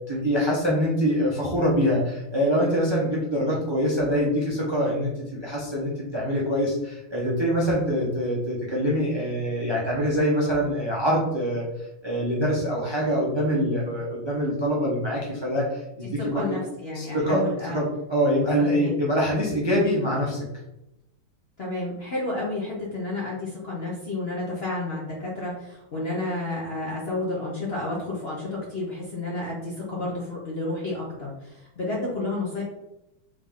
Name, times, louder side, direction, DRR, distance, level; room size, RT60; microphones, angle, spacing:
voice 1, 0.1-16.5 16.9-20.5, equal, 45° right, -5 dB, 0.3 m, -24 dB
voice 2, 16.3-17.8 18.6-18.9 21.6-32.6, left 2 dB, 50° left, -5 dB, 0.7 m, -31 dB
3.8 x 3.8 x 3.6 m, 0.89 s
omnidirectional pair, 2.2 m